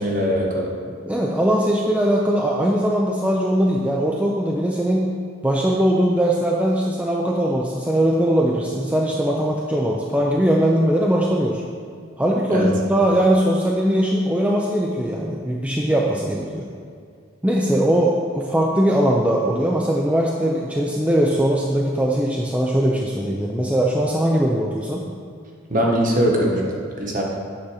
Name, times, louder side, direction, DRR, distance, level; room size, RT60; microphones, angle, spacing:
voice 1, 0.0-0.7 12.5-12.7 25.7-26.7 27.0-27.2, equal, 40° right, -2 dB, 1.3 m, -21 dB
voice 2, 0.9-5.1 5.4-11.6 12.2-16.7 17.4-25.1, right 1 dB, 5° right, -2 dB, 0.5 m, -20 dB
8.7 x 4.1 x 6.4 m, 2.2 s
head